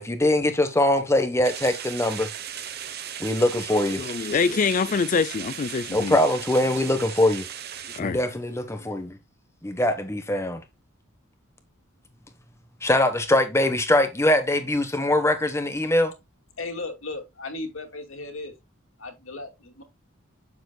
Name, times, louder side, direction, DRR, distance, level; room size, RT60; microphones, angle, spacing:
voice 1, 0.0-2.3 3.2-4.3 5.9-7.5 8.0-9.2 9.6-10.6 12.8-16.1, left 1 dB, 15° left, 1.1 m, -22 dB
sound 1, 1.4-8.0, right 9 dB, 50° right, 0.9 m, -37 dB
voice 2, 4.0-6.2 7.8-8.2 8.7-8.9, left 5 dB, 40° left, 0.4 m, -25 dB
voice 3, 16.6-18.5 19.0-19.8, left 2 dB, 75° left, 2.4 m, -36 dB
8.9 x 7.2 x 2.3 m
head